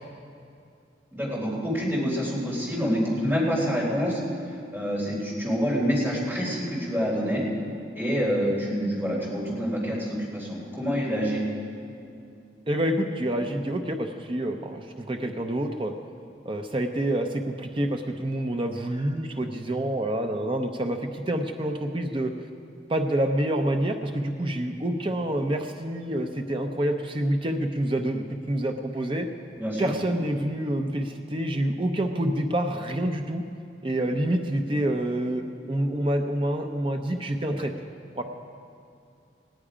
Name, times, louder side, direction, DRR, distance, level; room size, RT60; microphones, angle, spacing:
voice 1, 1.1-4.2 4.7-7.4 7.9-11.4 29.6-29.9, equal, 15° right, -7 dB, 3.5 m, -27 dB
voice 2, 12.7-15.9 16.4-22.3 22.9-29.3 29.8-33.4 33.8-37.7 38.2-38.3, right 1 dB, 30° right, 5 dB, 0.6 m, -27 dB
17.5 x 9.8 x 5.0 m, 2.5 s
head